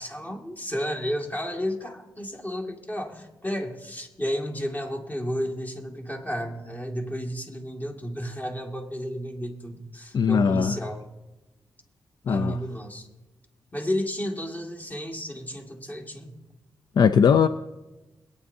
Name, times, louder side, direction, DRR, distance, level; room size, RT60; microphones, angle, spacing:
voice 1, 0.0-11.0 12.3-13.1 13.7-16.4, equal, 20° left, 2 dB, 2.2 m, -32 dB
voice 2, 10.1-10.7 12.3-12.6 17.0-17.5, left 6 dB, 65° left, 11 dB, 0.5 m, -19 dB
22.5 x 9.7 x 2.7 m, 1.1 s
cardioid pair, 75°, 8 cm